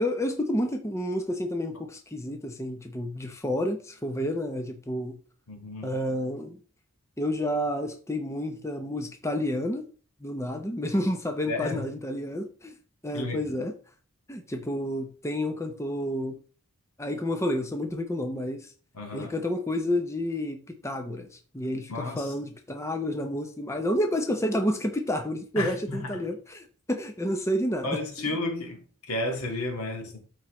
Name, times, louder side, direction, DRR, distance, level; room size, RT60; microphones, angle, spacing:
voice 1, 0.0-5.2 5.8-6.6 7.2-9.8 10.2-12.7 13.0-13.7 14.3-16.4 17.0-18.7 19.1-20.6 20.8-21.3 21.5-28.3, left 1 dB, 15° left, 0.7 m, -30 dB
voice 2, 5.5-5.9 11.5-11.8 13.1-13.5 18.9-19.3 21.9-22.3 25.6-26.2 27.8-30.2, left 2 dB, 85° left, 2.0 m, -32 dB
12.5 x 4.5 x 3.1 m
head